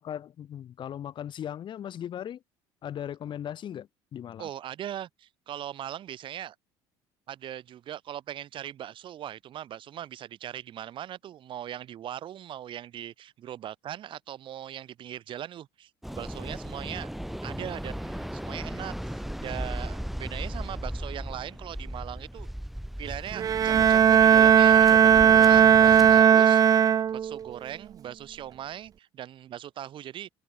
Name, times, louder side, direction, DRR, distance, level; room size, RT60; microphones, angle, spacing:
voice 1, 0.0-2.4 2.8-4.5, left 10 dB, 50° left, 3.8 m, -38 dB
voice 2, 4.4-6.5 7.3-17.1 17.4-22.5 23.0-30.3, right 11 dB, 50° right, 2.4 m, -40 dB
Waves surf, 16.0-26.2, equal, ahead, 3.2 m, -37 dB
Bowed string instrument, 23.3-27.4, right 8 dB, 35° right, 0.5 m, -17 dB
supercardioid pair, 95°, 11 cm